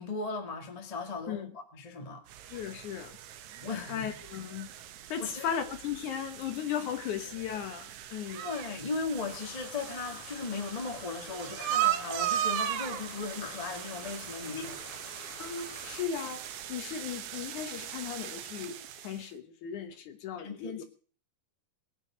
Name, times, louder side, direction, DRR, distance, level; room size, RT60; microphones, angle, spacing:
voice 1, 0.0-1.5 1.7-2.2 3.6-4.1 5.2-5.4 8.3-14.8 20.4-20.8, left 4 dB, 20° left, 1.1 m, -37 dB
sound 1, 2.3-19.3, right 11 dB, 70° right, 1.9 m, -38 dB
voice 2, 2.5-3.1 3.9-4.7 5.1-8.5 14.5-14.8 15.4-20.8, left 8 dB, 65° left, 2.3 m, -37 dB
sound 2, 9.3-16.0, left 6 dB, 90° left, 3.8 m, -50 dB
20.5 x 8.4 x 6.2 m
omnidirectional pair, 4.1 m